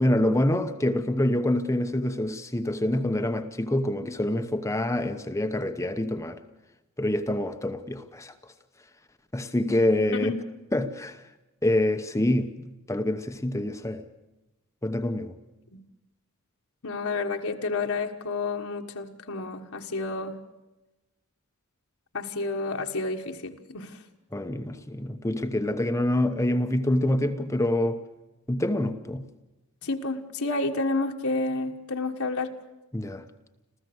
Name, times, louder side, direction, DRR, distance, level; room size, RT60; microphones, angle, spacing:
voice 1, 0.0-6.4 7.0-8.3 9.3-10.3 10.7-11.2 11.6-12.5 12.9-14.0 14.8-15.3 24.3-28.0 28.5-29.3 32.9-33.2, left 1 dB, 15° left, 0.9 m, -26 dB
voice 2, 16.8-20.4 22.1-24.0 29.8-32.5, left 3 dB, 65° left, 1.5 m, -30 dB
27.0 x 15.0 x 8.0 m
head